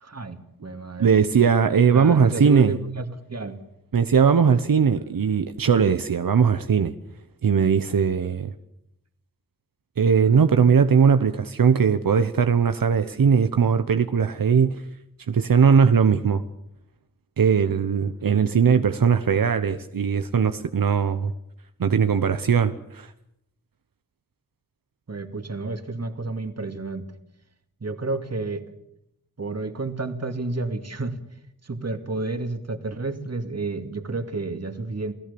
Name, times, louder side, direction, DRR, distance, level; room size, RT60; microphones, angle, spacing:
voice 1, 0.0-1.1 1.9-3.5 25.1-27.1 27.8-28.6 29.4-31.1 31.6-35.1, right 3 dB, 50° right, 7 dB, 2.4 m, -30 dB
voice 2, 1.0-2.7 3.9-6.9 7.4-8.5 10.0-14.8 15.3-16.4 17.4-21.3 21.8-23.1, right 6 dB, 85° right, 9 dB, 1.0 m, -19 dB
28.5 x 17.5 x 7.0 m, 0.80 s
wide cardioid pair, 80°, 33 cm